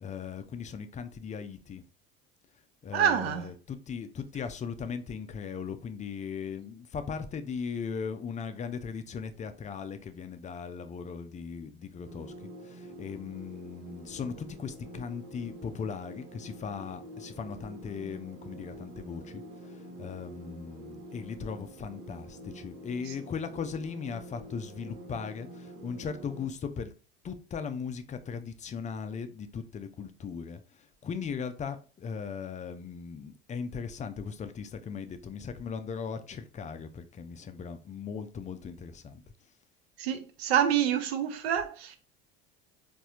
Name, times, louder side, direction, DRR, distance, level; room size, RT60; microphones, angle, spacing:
voice 1, 0.0-1.8 2.8-12.3 12.6-26.9 27.2-39.2, left 6 dB, 25° left, 0.5 m, -38 dB
voice 2, 2.9-3.4 40.0-42.0, right 9 dB, 80° right, 0.7 m, -27 dB
sound 1, 12.0-26.4, right 1 dB, 65° right, 1.3 m, -47 dB
4.1 x 2.6 x 2.3 m
hypercardioid pair, 80°, 31 cm